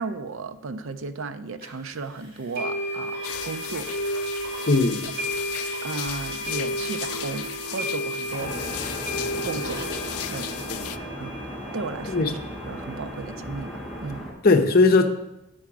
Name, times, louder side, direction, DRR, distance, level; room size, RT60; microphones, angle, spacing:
voice 1, 0.0-3.2 3.4-3.9 5.8-8.5 9.4-9.8 10.3-10.8 11.2-11.4 11.7-12.3 12.7-14.3, right 4 dB, 65° right, 11 dB, 0.5 m, -34 dB
sound 1, 1.6-1.7 2.6-14.1, equal, 45° right, 2.5 m, -33 dB
sound 2, 3.2-11.0, left 12 dB, 85° left, 0.4 m, -36 dB
voice 2, 4.7-5.1 8.4-8.5 10.7-10.8 12.1-12.3 14.4-15.1, left 3 dB, 45° left, 6 dB, 0.7 m, -19 dB
sound 3, 8.4-14.3, equal, ahead, 1.6 m, -36 dB
8.6 x 5.0 x 5.8 m, 0.91 s
head